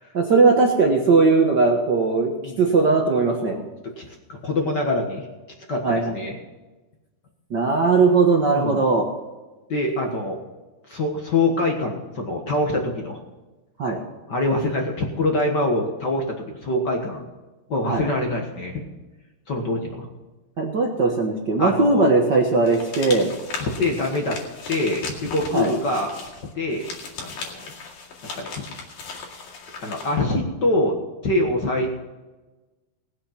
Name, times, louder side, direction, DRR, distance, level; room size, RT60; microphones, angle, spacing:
voice 1, 0.1-2.3 2.6-3.6 5.8-6.1 7.5-9.1 13.8-14.0 17.9-18.1 20.6-23.3 25.5-25.7, right 3 dB, 70° right, 0 dB, 1.0 m, -19 dB
voice 2, 3.3-3.6 4.0-5.3 5.7-6.4 8.5-8.8 9.7-10.4 10.9-13.2 14.3-17.3 17.7-18.8 19.5-20.1 21.6-22.0 23.6-24.4 24.7-26.1 26.5-26.9 27.2-27.7 28.3-28.5 29.8-31.0 31.2-31.9, left 2 dB, 55° left, 1 dB, 1.2 m, -24 dB
sound 1, 22.6-30.2, left 4 dB, 70° left, 3.7 m, -37 dB
19.0 x 7.7 x 5.8 m, 1.2 s
omnidirectional pair, 4.2 m